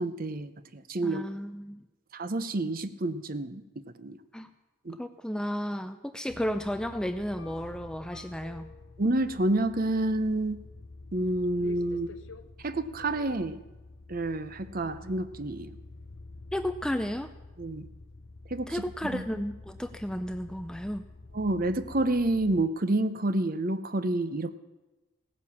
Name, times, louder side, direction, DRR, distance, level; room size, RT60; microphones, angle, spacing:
voice 1, 0.0-1.2 2.1-3.6 4.0-4.2 4.8-5.0 9.0-10.6 11.1-12.1 12.6-13.6 14.1-15.7 17.6-17.9 18.5-18.8 19.1-19.2 21.3-24.6, right 2 dB, 40° right, 12 dB, 0.8 m, -29 dB
voice 2, 1.0-1.8 4.3-4.5 5.0-8.7 16.5-17.3 18.7-21.0, equal, 5° left, 9 dB, 0.4 m, -33 dB
sound 1, 6.3-22.7, left 2 dB, 55° left, 0.7 m, -48 dB
17.0 x 9.5 x 7.2 m, 1.1 s
head